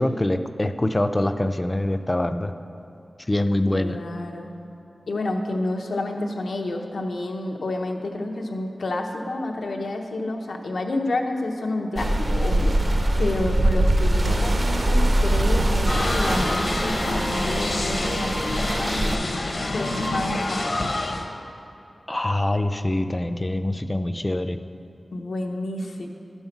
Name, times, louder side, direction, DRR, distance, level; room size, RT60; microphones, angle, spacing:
voice 1, 0.0-2.5 3.3-4.0 22.1-24.6, left 1 dB, 20° left, 9 dB, 0.4 m, -24 dB
voice 2, 3.7-4.5 5.1-20.7 25.1-26.1, left 2 dB, 90° left, 2 dB, 0.8 m, -29 dB
sound 1, 12.0-19.2, right 1 dB, 40° right, 0.6 m, -22 dB
sound 2, 15.9-21.3, left 2 dB, 55° left, 0.7 m, -27 dB
11.5 x 5.5 x 5.9 m, 2.8 s
wide cardioid pair, 100°, 0 cm